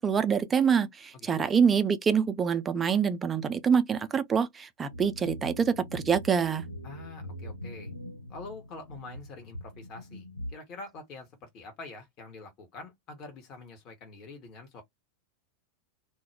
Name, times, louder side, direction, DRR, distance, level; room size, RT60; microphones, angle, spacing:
voice 1, 0.0-6.6, right 6 dB, 20° right, 0.4 m, -26 dB
voice 2, 1.1-1.5 6.8-7.9 8.3-14.8, left 3 dB, 35° left, 0.9 m, -46 dB
sound 1, 4.9-10.5, equal, 90° right, 0.4 m, -42 dB
2.2 x 2.0 x 3.2 m
figure-of-eight pair, 90°, 0 cm